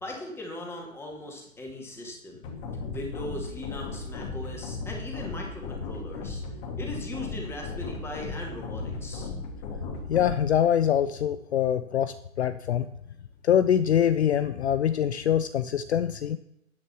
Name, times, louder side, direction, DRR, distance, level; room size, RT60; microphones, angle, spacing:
voice 1, 0.0-2.5 2.9-6.4 6.8-9.3, left 1 dB, 5° left, 0 dB, 2.3 m, -39 dB
sound 1, 2.4-10.4, left 3 dB, 35° left, 2.6 m, -36 dB
voice 2, 10.1-12.9 13.4-16.4, left 9 dB, 55° left, 12 dB, 0.6 m, -24 dB
10.5 x 8.2 x 6.2 m, 0.80 s
figure-of-eight pair, 125°, 41 cm